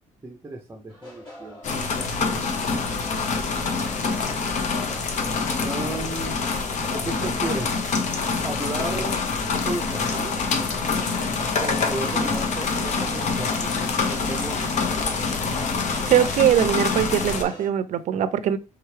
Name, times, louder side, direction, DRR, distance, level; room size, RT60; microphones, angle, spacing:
voice 1, 0.2-1.6 5.6-6.4 7.0-7.9 8.4-9.2 9.6-10.4 11.6-14.7 15.0-15.3, right 2 dB, 15° right, 0.7 m, -34 dB
sound 1, 0.9-17.7, left 1 dB, 35° left, 2.9 m, -43 dB
sound 2, 1.6-17.4, left 4 dB, 60° left, 0.9 m, -26 dB
voice 2, 16.1-18.6, right 10 dB, 60° right, 0.5 m, -21 dB
4.6 x 3.5 x 3.2 m
cardioid pair, 155°, 14 cm